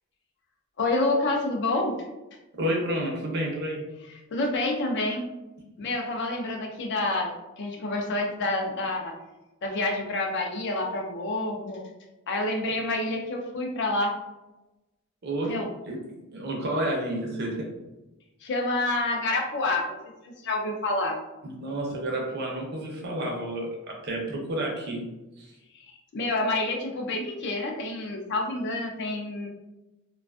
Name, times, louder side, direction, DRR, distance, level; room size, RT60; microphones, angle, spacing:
voice 1, 0.8-2.0 4.3-5.3 5.8-9.1 9.6-11.8 12.3-14.1 15.4-15.7 18.4-20.0 20.2-21.2 25.7-25.9 26.1-29.5, left 2 dB, 55° left, 1 dB, 0.5 m, -28 dB
voice 2, 2.6-3.8 12.7-12.8 15.2-15.5 15.8-16.0 16.3-17.7 21.4-25.0, right 1 dB, 50° right, 0 dB, 0.6 m, -30 dB
2.4 x 2.3 x 2.3 m, 1.0 s
head